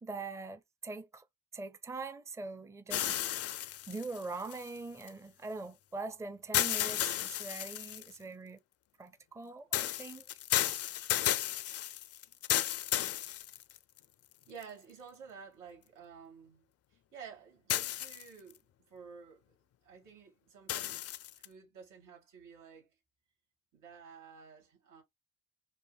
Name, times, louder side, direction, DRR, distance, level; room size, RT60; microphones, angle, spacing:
voice 1, 0.0-1.2 1.5-8.6 9.0-10.4, right 3 dB, 10° right, 0.5 m, -43 dB
sound 1, 2.9-5.1 6.5-8.2 9.7-14.0 14.6-14.7 17.7-18.5 20.7-21.5, left 12 dB, 55° left, 0.4 m, -33 dB
voice 2, 14.5-19.6 19.8-21.1 21.4-22.9 23.7-25.0, right 6 dB, 85° right, 2.1 m, -52 dB
5.4 x 2.1 x 2.3 m
cardioid pair, 90°, 30 cm